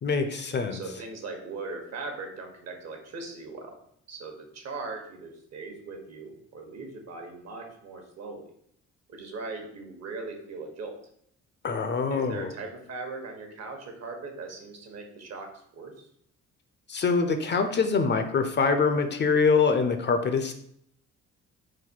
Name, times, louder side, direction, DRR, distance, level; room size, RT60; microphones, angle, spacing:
voice 1, 0.0-0.8 11.6-12.5 16.9-20.5, left 4 dB, 35° left, 7 dB, 0.5 m, -24 dB
voice 2, 0.7-3.8 4.1-8.4 9.1-11.0 12.1-15.9, right 3 dB, 60° right, 3 dB, 1.1 m, -39 dB
4.1 x 2.3 x 4.3 m, 0.68 s
cardioid pair, 90°, 30 cm